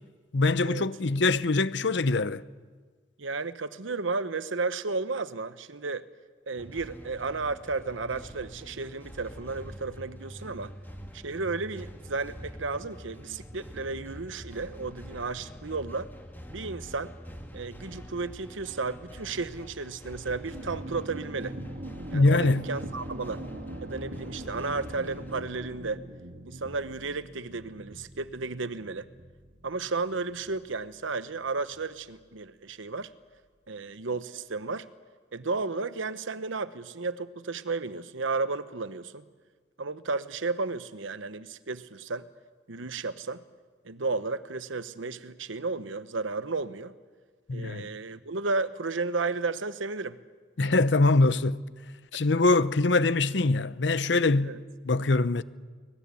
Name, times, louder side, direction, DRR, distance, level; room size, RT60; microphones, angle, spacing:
voice 1, 0.3-2.4 22.1-22.7 47.5-47.9 50.6-51.6 52.1-54.5 54.8-55.4, left 3 dB, 65° left, 0.8 m, -23 dB
voice 2, 3.2-6.1 6.5-10.7 11.1-16.1 16.5-17.1 17.5-21.6 22.1-23.4 23.8-26.0 26.5-29.1 29.6-33.1 33.7-34.9 35.3-39.2 39.8-42.3 42.7-43.4 43.8-46.9 47.5-50.2 54.4-54.6, right 3 dB, 80° right, 1.0 m, -33 dB
sound 1, 6.6-25.3, equal, 10° left, 1.8 m, -45 dB
sound 2, 20.4-31.9, right 1 dB, 60° right, 2.2 m, -42 dB
24.5 x 19.5 x 8.4 m
head